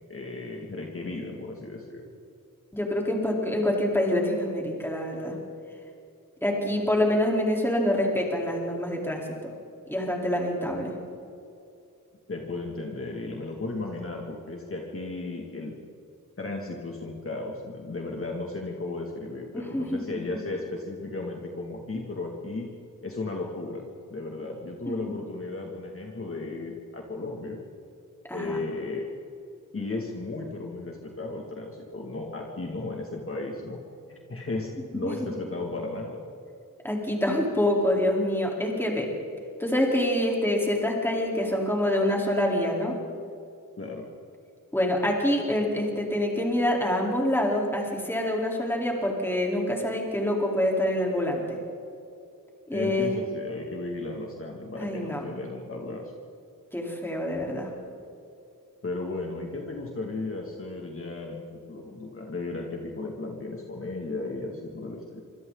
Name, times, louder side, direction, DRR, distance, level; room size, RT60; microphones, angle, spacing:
voice 1, 0.1-2.2 12.3-15.7 16.4-22.7 23.0-27.6 28.3-29.1 29.7-33.8 34.1-36.2 43.8-44.1 52.7-56.1 58.8-65.2, left 2 dB, 40° left, 0 dB, 2.6 m, -35 dB
voice 2, 2.7-5.3 6.4-9.5 9.9-10.9 19.5-20.2 24.9-25.1 28.3-28.6 34.9-35.3 36.8-39.1 39.6-43.0 44.7-51.6 52.7-53.2 54.8-55.3 56.7-57.7, left 1 dB, 5° left, -2 dB, 4.2 m, -26 dB
26.5 x 26.0 x 4.1 m, 2.5 s
wide cardioid pair, 150°, 34 cm